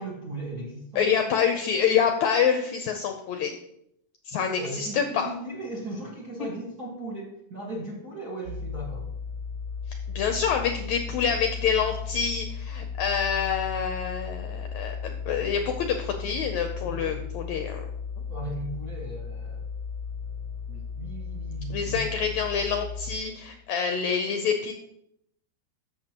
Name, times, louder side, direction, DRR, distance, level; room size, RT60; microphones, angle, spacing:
voice 1, 0.0-1.1 4.4-9.1 16.9-17.2 18.3-19.7 20.7-22.1, right 2 dB, 45° right, -3 dB, 1.2 m, -37 dB
voice 2, 1.0-3.6 4.3-5.3 10.2-17.8 21.7-24.7, left 7 dB, 80° left, 5 dB, 1.7 m, -26 dB
sound 1, 8.5-23.2, left 6 dB, 70° right, 2.2 m, -35 dB
13.5 x 6.8 x 2.9 m, 0.77 s
omnidirectional pair, 4.0 m